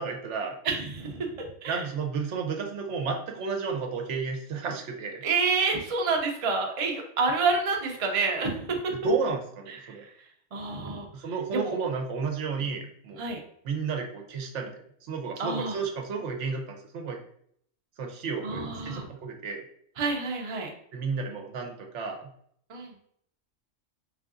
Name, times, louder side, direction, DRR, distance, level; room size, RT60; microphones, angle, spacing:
voice 1, 0.0-0.6 1.7-5.2 8.9-10.0 11.1-13.2 13.6-17.2 18.0-19.6 20.9-22.3, right 5 dB, 70° right, 3 dB, 0.9 m, -32 dB
voice 2, 0.6-1.8 5.2-8.9 9.8-10.0 10.5-11.1 11.6-11.7 13.2-13.4 15.4-15.7 18.4-19.0 20.0-20.7 22.7-22.9, right 4 dB, 40° right, 1 dB, 0.5 m, -28 dB
3.7 x 3.3 x 2.4 m, 0.66 s
omnidirectional pair, 1.3 m